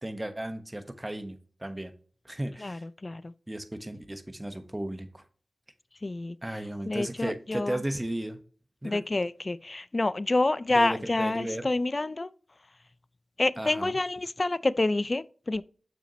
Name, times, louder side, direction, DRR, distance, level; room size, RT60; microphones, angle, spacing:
voice 1, 0.0-1.9 2.2-2.8 3.5-5.2 6.4-8.4 8.8-9.0 10.7-11.6 13.6-13.9, right 1 dB, 20° right, 1.0 m, -35 dB
voice 2, 2.6-3.3 6.0-6.4 6.9-7.8 8.8-12.3 13.4-15.6, left 2 dB, 45° left, 0.4 m, -28 dB
7.0 x 5.9 x 2.9 m
cardioid pair, 45°, 0 cm